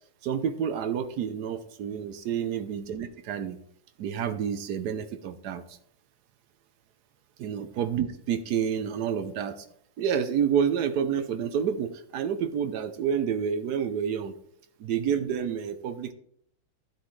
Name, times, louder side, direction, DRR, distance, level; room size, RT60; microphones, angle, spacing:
voice 1, 0.2-3.6 4.0-5.8 7.4-9.7 10.0-14.3 14.8-16.1, right 8 dB, 65° right, 11 dB, 1.1 m, -29 dB
14.0 x 7.1 x 3.2 m, 0.67 s
omnidirectional pair, 2.2 m